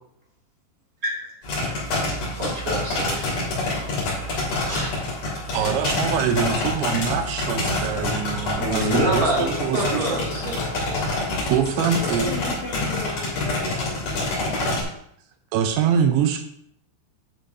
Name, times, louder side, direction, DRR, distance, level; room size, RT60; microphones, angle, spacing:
voice 1, 1.0-1.3 2.2-3.6 4.7-5.0 5.3-5.8 8.6-11.1, right 1 dB, 30° right, -4 dB, 1.6 m, -28 dB
sound 1, 1.4-14.8, left 2 dB, 45° left, 4.0 m, -27 dB
voice 2, 5.5-10.2 11.5-12.3 15.5-16.4, right 7 dB, 80° right, 7 dB, 2.9 m, -24 dB
voice 3, 11.6-14.8, left 3 dB, 80° left, -2 dB, 1.6 m, -36 dB
11.5 x 8.2 x 2.7 m, 0.70 s
omnidirectional pair, 5.4 m